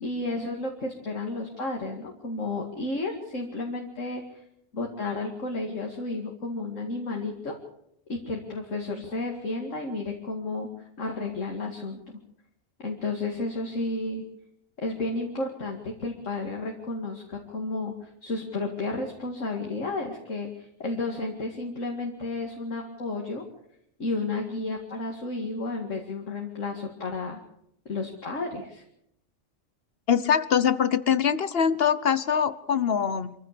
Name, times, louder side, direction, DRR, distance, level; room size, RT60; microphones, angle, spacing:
voice 1, 0.0-4.4 4.7-7.5 8.1-12.0 12.8-14.3 14.8-23.4 24.0-27.4 27.9-28.8, left 2 dB, 70° left, 1 dB, 2.6 m, -32 dB
voice 2, 30.1-33.3, left 7 dB, 50° left, 15 dB, 1.1 m, -23 dB
25.5 x 15.0 x 6.9 m, 0.75 s
omnidirectional pair, 1.4 m